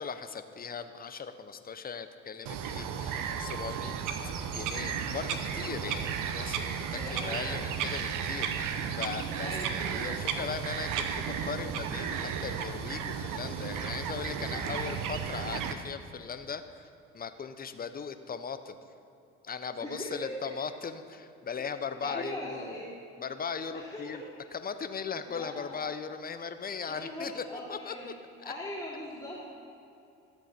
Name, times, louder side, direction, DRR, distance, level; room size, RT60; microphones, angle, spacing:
voice 1, 0.0-3.9 4.2-6.7 7.1-16.9 17.1-18.8 19.4-22.8 23.2-24.2 24.5-27.4 27.7-28.1, left 6 dB, 25° left, 10 dB, 0.7 m, -38 dB
Bird vocalization bird call bird song, 2.5-15.7, right 7 dB, 65° right, 0.9 m, -34 dB
voice 2, 6.9-7.7 9.4-9.8 14.5-14.9 19.8-20.5 21.9-22.9 23.7-24.2 25.3-25.8 26.9-28.1 28.4-29.4, left 1 dB, 10° left, -8 dB, 2.9 m, -40 dB
13.5 x 8.0 x 4.4 m, 2.8 s
supercardioid pair, 75°, 34 cm